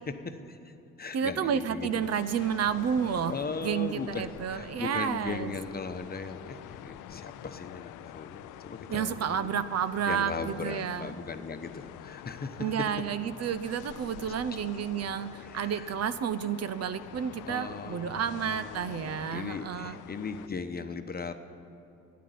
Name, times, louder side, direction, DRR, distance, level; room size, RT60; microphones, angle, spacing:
voice 1, 0.1-2.1 3.3-9.6 10.1-12.7 14.5-14.6 15.4-15.9 17.5-21.3, left 4 dB, 30° left, 8 dB, 1.0 m, -38 dB
voice 2, 1.1-5.5 8.9-11.1 12.6-20.0, right 8 dB, 55° right, 13 dB, 0.7 m, -31 dB
sound 1, 1.9-20.5, left 14 dB, 80° left, 0.5 m, -47 dB
12.0 x 9.5 x 9.4 m, 2.8 s
cardioid pair, 90°, 30 cm